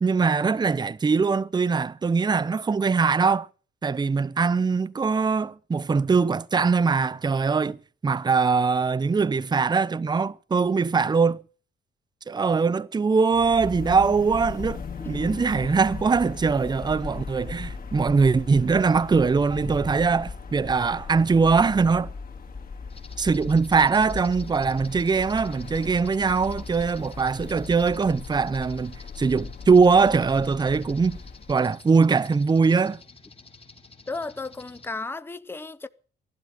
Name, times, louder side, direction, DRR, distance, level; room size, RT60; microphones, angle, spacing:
voice 1, 0.0-3.5 3.8-11.4 12.3-22.1 23.2-31.2 31.5-33.0, right 5 dB, 20° right, 0.6 m, -22 dB
sound 1, 13.3-31.6, left 5 dB, 45° left, 3.0 m, -38 dB
sound 2, 22.9-34.9, left 4 dB, 30° left, 2.3 m, -50 dB
voice 2, 34.1-35.9, left 3 dB, 10° left, 0.8 m, -34 dB
15.0 x 12.0 x 6.5 m
cardioid pair, 90°, 20 cm